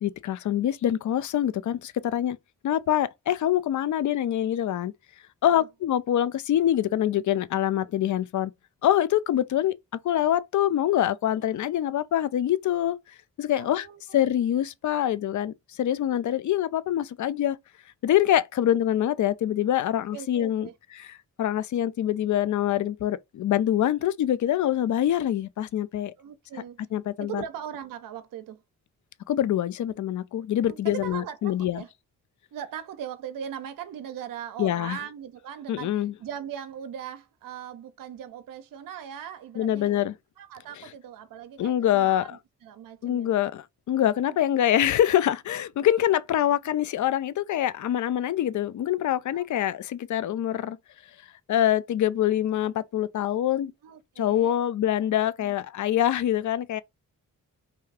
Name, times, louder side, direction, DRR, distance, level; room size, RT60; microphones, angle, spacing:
voice 1, 0.0-2.4 2.6-4.9 5.4-8.5 8.8-9.7 10.0-13.0 13.4-13.9 14.1-17.6 18.0-26.1 26.9-27.4 29.3-31.8 34.6-35.0 35.7-36.1 39.6-40.1 41.6-42.4 43.0-50.8 51.5-53.7 54.2-56.8, left 11 dB, 50° left, 0.4 m, -25 dB
voice 2, 13.5-14.3 20.1-20.7 26.2-26.9 27.2-28.6 30.7-31.9 32.5-40.1 40.4-43.4 44.3-44.4 49.3-49.4 53.8-54.6 55.4-55.5, right 9 dB, 55° right, 0.5 m, -40 dB
2.7 x 2.3 x 3.3 m
supercardioid pair, 45°, 39 cm